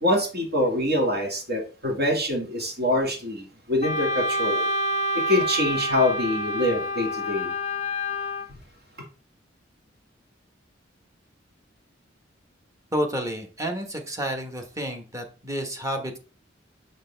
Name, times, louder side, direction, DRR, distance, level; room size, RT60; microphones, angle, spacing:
voice 1, 0.0-4.7 5.1-7.5, left 1 dB, 60° right, 1.9 m, -25 dB
Wind instrument woodwind instrument, 3.8-8.5, equal, 35° left, 0.4 m, -27 dB
voice 2, 12.9-16.2, equal, 15° right, 1.1 m, -30 dB
6.5 x 6.4 x 3.3 m
head